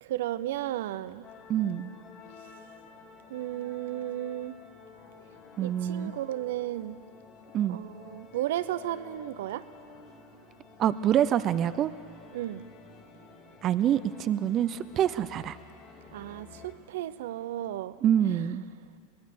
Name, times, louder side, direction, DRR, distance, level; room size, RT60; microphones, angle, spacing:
voice 1, 0.0-1.3 3.3-4.6 5.6-7.0 7.7-9.6 12.3-12.7 16.1-18.0 18.3-18.4, right 13 dB, 75° right, 15 dB, 0.8 m, -34 dB
sound 1, 1.2-16.7, left 5 dB, 40° left, 4.0 m, -52 dB
voice 2, 1.5-1.9 5.6-6.1 7.5-7.8 10.8-11.9 13.6-15.6 18.0-18.6, right 10 dB, 40° right, 14 dB, 0.7 m, -26 dB
23.0 x 19.0 x 6.9 m, 2.5 s
hypercardioid pair, 105°, 0 cm